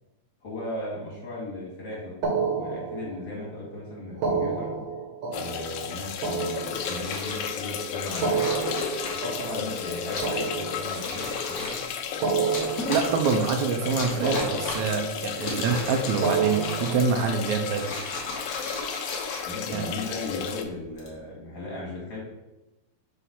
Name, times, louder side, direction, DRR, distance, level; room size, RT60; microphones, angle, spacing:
voice 1, 0.4-2.2 2.6-4.7 5.3-8.4 9.2-11.8 19.4-22.2, left 2 dB, 45° left, -5 dB, 2.4 m, -36 dB
sound 1, 2.2-3.5 4.1-7.4 8.1-11.4 12.1-14.0 14.2-15.3 16.1-17.9, right 5 dB, 65° right, 1.9 m, -31 dB
sound 2, 5.3-20.6, left 7 dB, 90° left, 1.3 m, -33 dB
sound 3, 6.7-7.5 8.0-9.4 10.0-10.4 10.8-11.9 12.4-13.5 13.9-15.0 15.3-17.2 17.6-20.1 20.8-21.1, left 2 dB, 65° left, 0.9 m, -36 dB
voice 2, 12.9-17.9 19.7-19.8, right 5 dB, 85° right, 5 dB, 2.0 m, -26 dB
5.7 x 3.1 x 5.6 m, 1.0 s
omnidirectional pair, 3.4 m